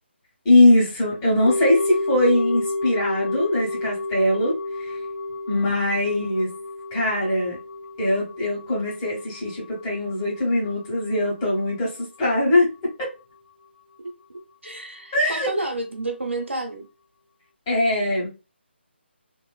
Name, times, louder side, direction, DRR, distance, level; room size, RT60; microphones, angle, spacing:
voice 1, 0.4-5.0 5.5-6.5 6.9-7.6 8.0-13.1 15.1-15.5 17.7-18.3, left 1 dB, 20° left, 1.5 m, -21 dB
sound 1, 1.5-11.7 12.0-12.1, left 2 dB, 70° left, 0.4 m, -31 dB
voice 2, 14.6-16.8, right 2 dB, 85° right, 1.0 m, -30 dB
3.0 x 2.9 x 2.3 m
figure-of-eight pair, 150°, 6 cm